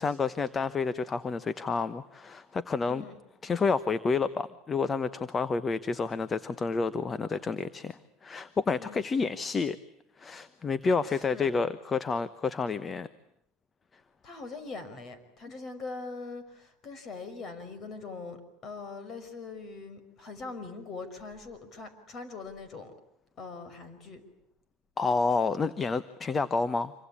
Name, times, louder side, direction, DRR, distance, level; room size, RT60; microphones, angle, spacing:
voice 1, 0.0-3.1 3.4-9.8 10.2-13.1 25.0-26.9, left 4 dB, 20° left, 15 dB, 1.0 m, -29 dB
voice 2, 11.1-11.6 14.2-18.4 18.6-22.9 23.4-24.2, left 3 dB, 35° left, 11 dB, 5.9 m, -42 dB
27.5 x 24.5 x 8.7 m, 0.76 s
supercardioid pair, 135°, 0 cm